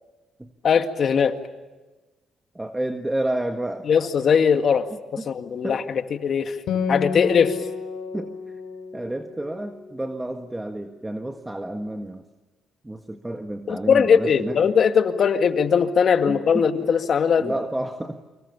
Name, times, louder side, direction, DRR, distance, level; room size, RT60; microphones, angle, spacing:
voice 1, 0.6-1.3 3.9-4.9 5.3-5.8 6.2-6.6 6.9-7.6 13.7-17.5, left 6 dB, 55° left, 7 dB, 2.0 m, -20 dB
voice 2, 2.5-3.9 5.2-5.3 5.6-5.8 8.1-8.6 8.9-12.2 12.8-14.7 16.3-16.7 17.4-18.2, right 1 dB, 10° right, 6 dB, 1.6 m, -30 dB
Acoustic guitar, 6.7-10.4, left 6 dB, 80° left, 3.8 m, -31 dB
29.0 x 26.0 x 7.1 m, 1.2 s
cardioid pair, 90°, 0 cm